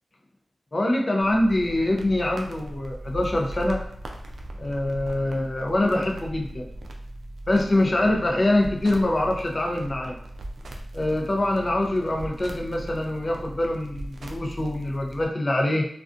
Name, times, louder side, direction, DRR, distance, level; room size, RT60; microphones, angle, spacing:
voice 1, 0.7-3.8 4.6-6.7 7.5-10.2 10.9-15.9, left 1 dB, 45° left, 1 dB, 0.5 m, -24 dB
sound 1, 1.2-15.2, right 1 dB, 80° right, 0.3 m, -39 dB
2.4 x 2.3 x 2.5 m, 0.66 s
cardioid pair, 45°, 0 cm